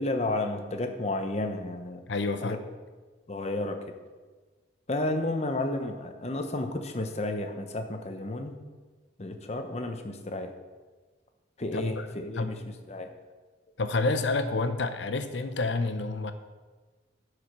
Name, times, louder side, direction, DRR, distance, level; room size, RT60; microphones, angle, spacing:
voice 1, 0.0-2.0 2.4-2.6 3.3-3.8 4.9-8.6 9.2-10.5 11.6-12.6 12.9-13.1, left 2 dB, 35° left, 6 dB, 0.8 m, -31 dB
voice 2, 2.1-2.6 11.7-12.1 12.4-12.5 13.8-16.3, left 3 dB, 70° left, 9 dB, 0.7 m, -29 dB
11.0 x 5.0 x 6.0 m, 1.4 s
head